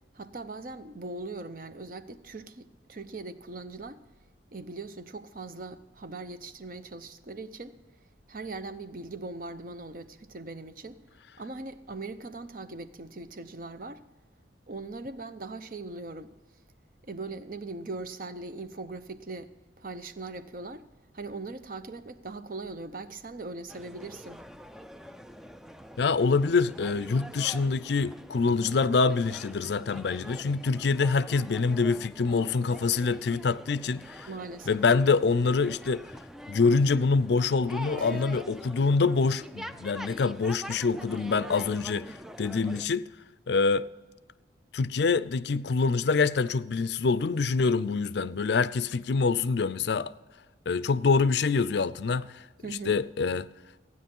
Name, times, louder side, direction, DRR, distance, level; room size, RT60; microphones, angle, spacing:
voice 1, 0.1-4.0 4.5-7.8 8.3-11.0 11.4-14.0 14.7-16.3 17.0-20.8 21.1-24.4 34.3-34.8 38.0-38.4 52.6-53.0, right 3 dB, 45° right, 0.7 m, -40 dB
sound 1, 23.7-42.9, equal, ahead, 0.3 m, -45 dB
voice 2, 26.0-34.3 34.7-36.0 36.5-43.1 43.5-43.9 44.7-50.1 50.7-52.4 52.9-53.5, left 4 dB, 60° left, 0.4 m, -25 dB
15.0 x 9.6 x 5.4 m
head